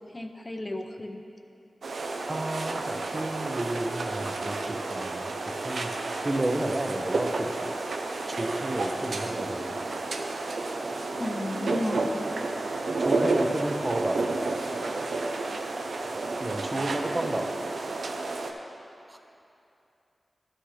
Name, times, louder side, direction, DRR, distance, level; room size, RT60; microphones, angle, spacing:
voice 1, 0.1-1.2 11.1-12.0, left 1 dB, 30° left, 5 dB, 0.6 m, -33 dB
sound 1, 1.8-18.5, right 3 dB, 80° right, 0.5 m, -31 dB
voice 2, 2.3-7.8 8.3-9.9 13.0-14.3 16.4-17.6 19.1-19.2, right 1 dB, 40° right, 5 dB, 0.7 m, -32 dB
11.5 x 6.5 x 3.2 m, 2.7 s
cardioid pair, 40°, 0 cm